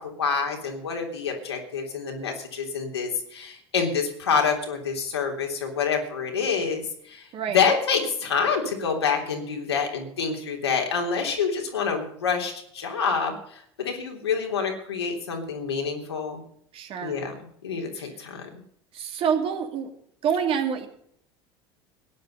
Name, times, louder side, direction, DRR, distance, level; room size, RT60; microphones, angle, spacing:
voice 1, 0.0-16.4 17.0-17.3 17.6-18.6, left 5 dB, 75° left, 2 dB, 3.3 m, -27 dB
voice 2, 16.7-17.2 17.9-18.2 18.9-19.9 20.2-20.9, right 7 dB, 45° right, 5 dB, 2.5 m, -27 dB
17.0 x 10.5 x 5.4 m, 0.67 s
figure-of-eight pair, 70°, 14 cm